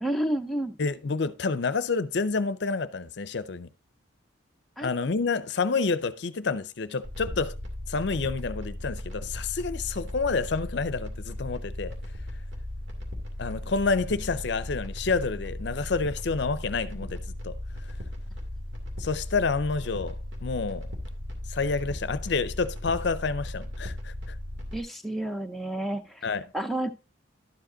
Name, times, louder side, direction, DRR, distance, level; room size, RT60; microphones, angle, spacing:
voice 1, 0.0-0.8 4.8-4.9 24.7-26.3 26.5-26.9, right 1 dB, ahead, 0.6 m, -30 dB
voice 2, 0.8-3.7 4.8-7.6 7.9-12.0 13.4-17.6 19.0-20.9 21.5-24.4 26.2-26.4, left 4 dB, 60° left, 0.6 m, -29 dB
sound 1, 7.0-24.8, left 1 dB, 65° right, 2.5 m, -37 dB
12.0 x 5.1 x 3.8 m
head